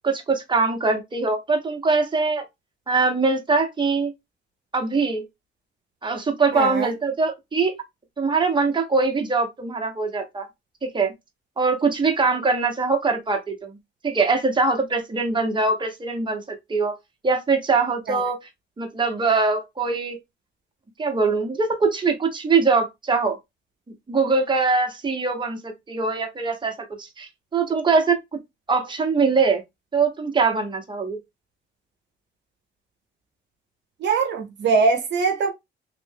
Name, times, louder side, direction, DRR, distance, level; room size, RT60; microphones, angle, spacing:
voice 1, 0.0-2.4 2.9-4.1 4.7-5.2 6.0-7.8 8.2-10.5 10.8-11.1 11.6-13.7 14.0-16.9 17.2-18.4 18.8-20.2 21.0-23.4 24.1-26.7 27.0-28.2 28.7-29.6 29.9-31.2, right 4 dB, 25° right, 1.1 m, -22 dB
voice 2, 6.5-6.9 34.0-35.5, right 4 dB, 65° right, 0.8 m, -21 dB
3.2 x 2.5 x 3.5 m
cardioid pair, 90°, 20 cm